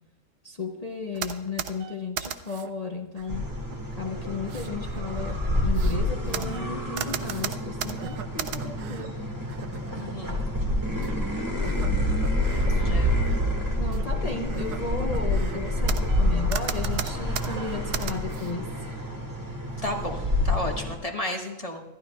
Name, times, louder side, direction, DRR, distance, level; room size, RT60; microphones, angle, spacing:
voice 1, 0.4-3.5 4.0-9.2 13.8-18.9, left 4 dB, 55° left, 3 dB, 0.4 m, -35 dB
sound 1, 1.1-2.7 3.2-3.8 4.4-9.1 9.5-10.0 11.0-11.1 11.6-12.7 13.1-13.4 13.9-14.0 14.5-16.2 16.5-18.5, right 9 dB, 75° right, 1.2 m, -36 dB
sound 2, 3.3-21.0, left 1 dB, 10° right, 1.6 m, -28 dB
voice 2, 9.9-10.4 12.7-13.7 19.8-21.8, left 1 dB, 20° left, 1 dB, 1.4 m, -33 dB
26.5 x 13.0 x 2.3 m, 1.0 s
omnidirectional pair, 1.8 m